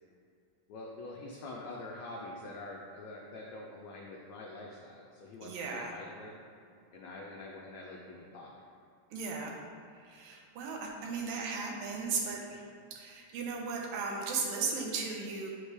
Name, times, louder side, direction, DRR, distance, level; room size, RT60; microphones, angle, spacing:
voice 1, 0.7-6.3 6.9-8.7, left 2 dB, 80° left, -2 dB, 1.6 m, -45 dB
voice 2, 5.4-6.0 9.1-9.6 10.0-12.6 12.9-15.5, right 4 dB, 80° right, 0 dB, 2.6 m, -36 dB
9.1 x 5.4 x 3.4 m, 2.4 s
omnidirectional pair, 4.0 m